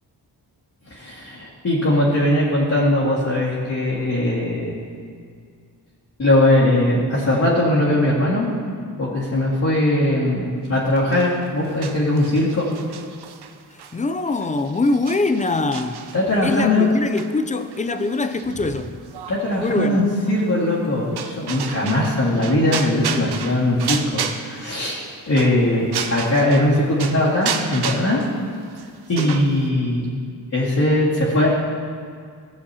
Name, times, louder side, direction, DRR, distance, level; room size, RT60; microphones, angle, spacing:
voice 1, 0.9-4.7 6.2-8.5 9.0-12.7 16.1-16.9 19.3-28.2 29.1-30.2 30.5-31.6, left 1 dB, 45° left, 2.0 m, -20 dB
sound 1, 11.0-26.7 27.0-29.7, right 7 dB, 70° right, 0.8 m, -33 dB
voice 2, 13.9-16.1 16.4-18.9 19.6-20.1 29.2-29.4, left 3 dB, 20° left, 0.5 m, -23 dB
16.5 x 7.0 x 2.8 m
cardioid pair, 95°, 40 cm